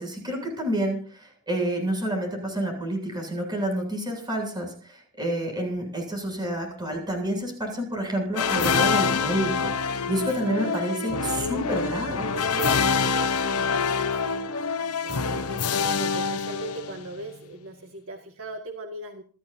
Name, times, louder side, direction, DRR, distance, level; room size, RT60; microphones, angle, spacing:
voice 1, 0.0-12.8, right 1 dB, 20° right, 2 dB, 7.9 m, -29 dB
sound 1, 8.4-17.2, left 5 dB, 75° left, 1.0 m, -26 dB
voice 2, 10.4-12.0 12.3-14.5 15.0-19.2, right 1 dB, 65° right, 3 dB, 2.0 m, -38 dB
28.5 x 13.0 x 2.8 m, 0.42 s
head